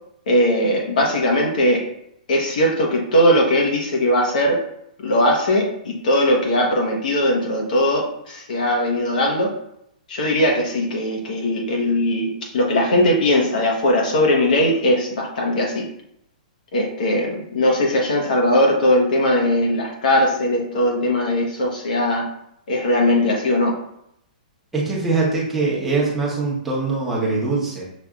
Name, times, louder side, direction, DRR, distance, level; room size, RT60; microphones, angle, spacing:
voice 1, 0.3-1.9 2.3-4.6 5.0-9.5 10.1-15.9 16.7-22.3 22.7-23.8, left 1 dB, 65° left, 0 dB, 1.1 m, -19 dB
voice 2, 24.7-27.8, right 3 dB, 5° right, -6 dB, 0.9 m, -22 dB
6.3 x 2.6 x 2.4 m, 0.77 s
hypercardioid pair, 170°, 5 cm